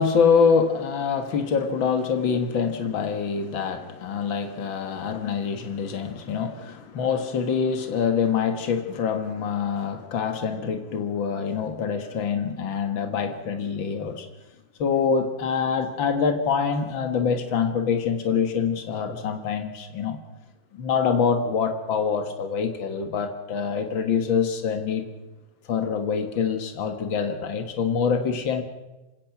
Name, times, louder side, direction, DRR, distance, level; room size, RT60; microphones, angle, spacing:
voice 1, 0.0-14.3 14.8-20.2 20.7-25.1 25.7-28.6, left 6 dB, 85° left, 7 dB, 2.3 m, -25 dB
27.0 x 17.0 x 6.0 m, 1.1 s
omnidirectional pair, 2.0 m